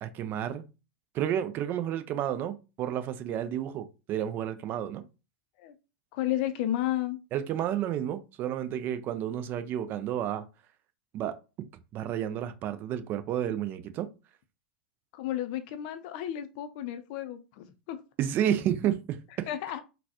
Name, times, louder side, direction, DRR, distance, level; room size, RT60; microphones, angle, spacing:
voice 1, 0.0-0.6 1.1-5.0 7.3-10.4 11.1-14.1 18.2-19.5, right 10 dB, 35° right, 0.4 m, -31 dB
voice 2, 6.1-7.2 15.1-18.0 19.5-19.8, left 12 dB, 50° left, 0.5 m, -32 dB
3.9 x 2.2 x 2.8 m
figure-of-eight pair, 90°, 6 cm